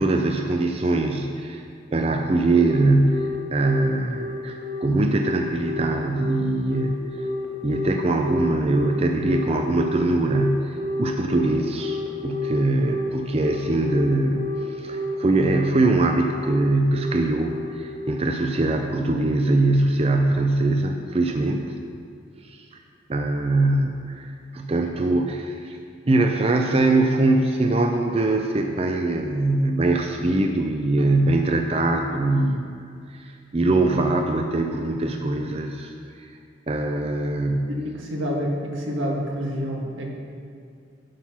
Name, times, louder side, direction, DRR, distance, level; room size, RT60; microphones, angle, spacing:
voice 1, 0.0-1.6 1.9-7.0 7.6-21.7 22.4-22.6 23.1-24.3 24.5-25.8 26.1-32.8 33.1-35.9 36.2-36.3 36.7-37.7, right 2 dB, 30° right, 4 dB, 0.5 m, -22 dB
Telephone, 2.6-18.7, left 1 dB, 60° right, 1.8 m, -30 dB
voice 2, 37.7-40.1, equal, 90° right, -2 dB, 1.8 m, -28 dB
11.5 x 5.8 x 6.0 m, 2.3 s
head